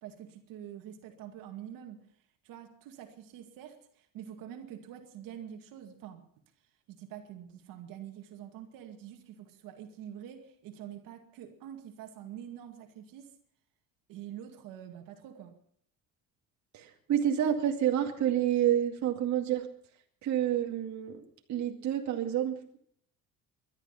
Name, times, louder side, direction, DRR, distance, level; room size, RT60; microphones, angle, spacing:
voice 1, 0.0-2.0 2.4-6.3 6.9-13.3 14.1-15.5, right 10 dB, 75° right, 2.2 m, -46 dB
voice 2, 16.7-19.7 20.2-21.2 21.5-22.6, right 10 dB, 55° right, 2.2 m, -28 dB
21.0 x 12.0 x 5.7 m
cardioid pair, 135°, 34 cm